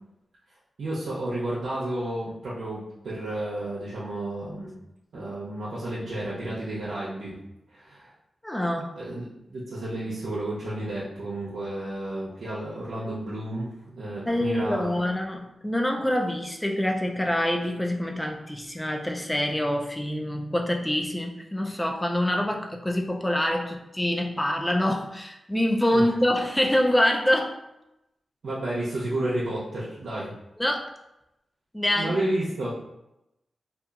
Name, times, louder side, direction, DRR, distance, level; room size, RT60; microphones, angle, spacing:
voice 1, 0.8-4.8 5.1-7.3 7.7-8.1 9.0-15.1 25.9-26.1 28.4-30.3 32.0-32.7, right 1 dB, 80° right, -8 dB, 0.6 m, -31 dB
voice 2, 8.4-9.0 14.3-27.6 30.6-30.9 31.7-32.2, left 1 dB, 10° left, 2 dB, 0.3 m, -26 dB
2.7 x 2.3 x 2.3 m, 0.89 s
wide cardioid pair, 80°, 0 cm